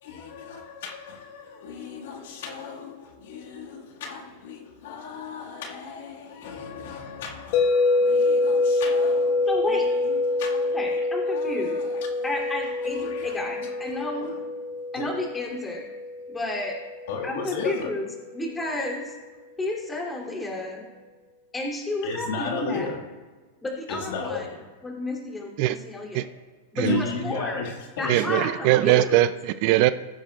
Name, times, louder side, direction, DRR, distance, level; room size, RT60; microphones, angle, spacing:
voice 1, 0.0-10.8 11.3-12.3 12.8-13.3 15.0-15.1 17.1-17.9 22.0-23.0 23.9-24.6 26.8-28.4, left 5 dB, 70° left, 1.8 m, -35 dB
sound 1, 7.5-17.6, left 3 dB, 55° left, 1.9 m, -26 dB
voice 2, 9.5-9.8 10.7-11.8 12.2-14.3 14.9-15.8 16.3-16.8 17.2-18.1 18.3-19.1 19.6-20.8 21.5-22.9 23.6-24.5 24.8-26.3 26.7-27.7 28.0-29.2, left 2 dB, 15° left, 2.9 m, -31 dB
voice 3, 28.1-29.9, right 15 dB, 55° right, 0.4 m, -21 dB
15.5 x 10.0 x 2.4 m
hypercardioid pair, 115°, 0 cm